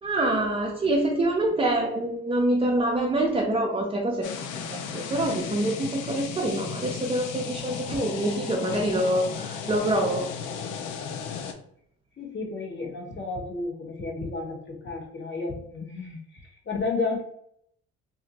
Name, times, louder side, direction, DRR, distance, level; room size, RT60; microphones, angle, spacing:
voice 1, 0.0-10.3, right 1 dB, 20° right, 0 dB, 0.4 m, -26 dB
sound 1, 4.2-11.5, left 7 dB, 85° left, 0.5 m, -35 dB
voice 2, 12.2-17.2, left 3 dB, 40° left, -1 dB, 1.1 m, -32 dB
2.6 x 2.0 x 3.9 m, 0.68 s
cardioid pair, 90°, 30 cm